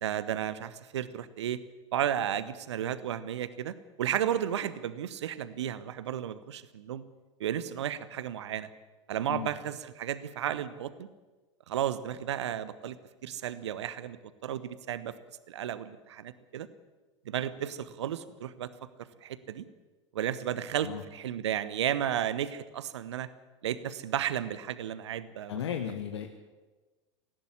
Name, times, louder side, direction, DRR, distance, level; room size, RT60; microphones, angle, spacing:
voice 1, 0.0-1.6 1.9-7.0 7.4-8.7 9.1-11.1 11.7-13.0 13.2-14.2 14.4-15.1 15.5-16.7 17.2-18.7 19.0-19.7 20.1-23.3 23.6-25.6, right 10 dB, 65° right, 15 dB, 1.1 m, -33 dB
voice 2, 25.5-26.3, left 9 dB, 65° left, 5 dB, 1.5 m, -35 dB
18.0 x 16.0 x 9.8 m, 1.2 s
figure-of-eight pair, 80°, 15 cm